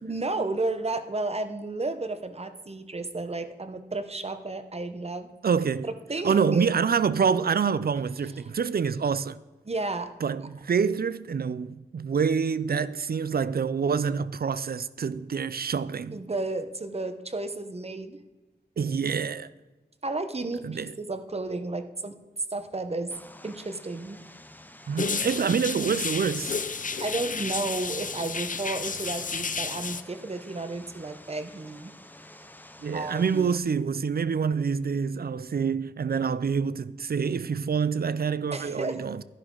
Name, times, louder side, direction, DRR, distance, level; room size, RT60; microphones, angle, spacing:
voice 1, 0.0-5.3 5.8-6.7 9.6-10.1 16.1-18.2 20.0-22.1 22.5-23.1 23.4-24.2 27.0-31.9 32.9-33.6 38.5-39.1, right 2 dB, 35° right, 0.9 m, -32 dB
voice 2, 5.4-5.9 6.2-9.4 10.2-16.2 18.8-19.5 20.6-20.9 24.9-26.5 32.8-39.2, right 6 dB, 65° right, 0.4 m, -26 dB
Vehicle, 23.1-33.6, left 1 dB, 10° left, 0.7 m, -49 dB
sound 1, 25.0-30.0, left 5 dB, 50° left, 0.6 m, -32 dB
11.5 x 11.0 x 3.8 m
wide cardioid pair, 80°, 17 cm